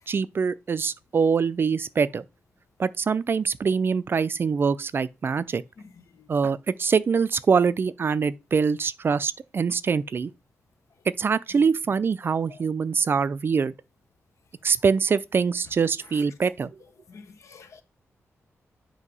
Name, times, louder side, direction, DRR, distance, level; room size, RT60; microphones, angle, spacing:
voice 1, 0.1-2.2 2.8-5.6 6.3-10.3 11.2-13.7 14.6-16.7, right 5 dB, 45° right, 0.4 m, -24 dB
voice 2, 17.1-17.8, left 5 dB, 70° left, 1.1 m, -47 dB
8.2 x 2.8 x 5.4 m
wide cardioid pair, 115°, 5 cm